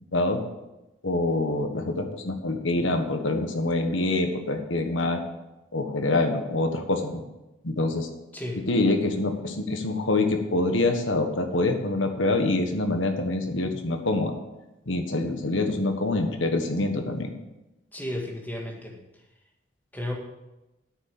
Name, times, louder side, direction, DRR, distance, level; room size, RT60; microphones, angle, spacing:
voice 1, 0.1-0.4 1.0-5.2 5.7-7.2 7.6-8.1 8.7-14.3 14.9-17.3, left 2 dB, 80° left, 5 dB, 1.5 m, -25 dB
voice 2, 8.3-8.6 17.9-19.0 19.9-20.1, left 1 dB, 10° left, -1 dB, 1.9 m, -33 dB
9.1 x 7.0 x 7.6 m, 0.98 s
head